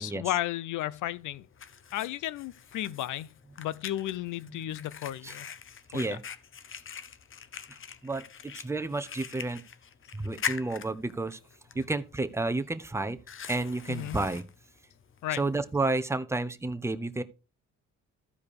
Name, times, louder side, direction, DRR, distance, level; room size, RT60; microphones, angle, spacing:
voice 1, 0.0-1.5 1.9-3.3 3.6-5.5 5.9-6.2 13.9-14.2 15.2-15.4, left 14 dB, 80° left, 0.7 m, -33 dB
Fire, 0.9-15.8, left 7 dB, 45° left, 0.9 m, -44 dB
voice 2, 5.9-6.2 8.0-9.6 10.1-11.4 11.7-13.2 13.5-14.4 15.3-17.2, right 2 dB, 10° right, 0.9 m, -31 dB
14.0 x 4.8 x 4.8 m
cardioid pair, 90°, 30 cm